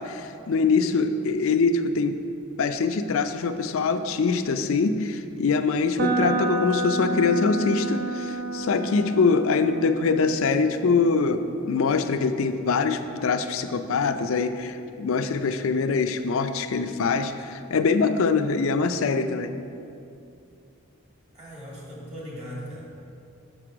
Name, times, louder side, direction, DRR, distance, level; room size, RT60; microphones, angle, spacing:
voice 1, 0.0-2.2 2.6-19.5, left 4 dB, 70° left, 9 dB, 0.4 m, -23 dB
sound 1, 6.0-13.9, right 2 dB, 45° right, 0.6 m, -32 dB
voice 2, 21.3-22.8, equal, 30° right, -5 dB, 1.9 m, -38 dB
6.6 x 6.0 x 5.0 m, 2.5 s
head